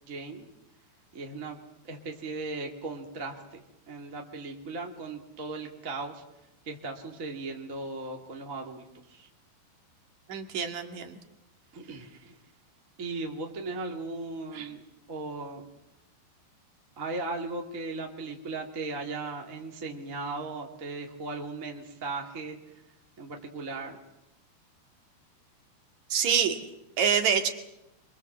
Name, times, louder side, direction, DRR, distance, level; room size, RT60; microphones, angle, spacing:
voice 1, 0.1-0.5 1.1-1.6 1.9-3.6 3.9-6.2 6.7-9.3 11.7-12.4 13.0-14.8 15.1-15.7 17.0-22.6 23.2-24.0, right 3 dB, 25° right, 1 dB, 2.1 m, -37 dB
voice 2, 10.3-11.2 14.5-14.7 26.1-26.6 27.0-27.5, right 7 dB, 50° right, 5 dB, 3.0 m, -26 dB
26.0 x 23.5 x 7.5 m, 0.88 s
omnidirectional pair, 4.9 m